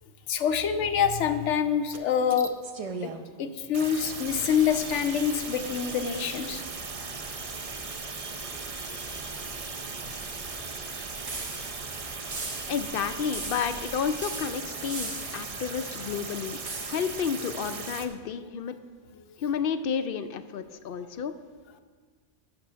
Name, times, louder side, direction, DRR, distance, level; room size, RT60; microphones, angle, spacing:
voice 1, 0.3-2.5 3.0-3.1 3.4-6.6, left 7 dB, 90° left, 7 dB, 0.9 m, -26 dB
sound 1, 1.9-2.0 2.3-3.2 3.7-18.1, right 4 dB, 40° right, 0.6 m, -38 dB
sound 2, 4.2-14.5, right 2 dB, 80° right, 1.4 m, -47 dB
sound 3, 11.3-11.9 12.3-12.9 13.3-13.9 14.2-15.5 16.7-17.2, right 3 dB, 65° right, 1.5 m, -39 dB
voice 2, 12.7-16.6 16.9-18.7 19.4-21.3, left 7 dB, 60° left, 10 dB, 0.6 m, -31 dB
8.7 x 6.2 x 6.8 m, 1.5 s
omnidirectional pair, 1.2 m